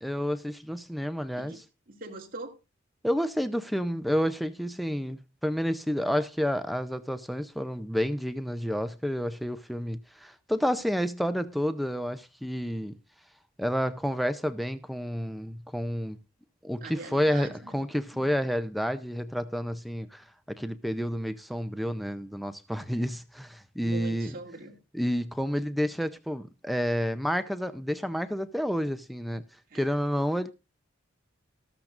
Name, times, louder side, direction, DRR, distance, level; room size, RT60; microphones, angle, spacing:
voice 1, 0.0-1.5 3.0-13.0 13.6-16.2 16.6-20.2 20.6-24.3 24.9-29.4 29.7-30.5, equal, ahead, 0.5 m, -30 dB
voice 2, 1.9-2.6 16.8-17.8 18.1-18.2 22.9-23.1 23.8-24.8 29.7-30.0, right 2 dB, 45° right, 2.2 m, -42 dB
13.5 x 13.0 x 2.5 m
head